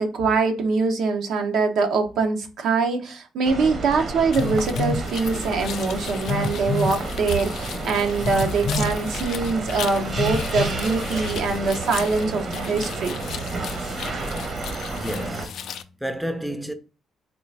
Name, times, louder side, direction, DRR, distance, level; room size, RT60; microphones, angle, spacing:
voice 1, 0.0-13.2, right 4 dB, 75° right, 0.8 m, -23 dB
sound 1, 3.4-15.5, right 2 dB, 50° right, 0.9 m, -31 dB
sound 2, 4.3-15.8, left 9 dB, 75° left, 0.3 m, -37 dB
Telephone, 4.4-5.1 6.3-7.0 8.2-9.0 10.2-10.7, left 3 dB, 50° left, 0.8 m, -27 dB
voice 2, 14.9-16.7, equal, 5° right, 0.5 m, -31 dB
3.8 x 2.4 x 3.3 m
cardioid pair, 90°, 0 cm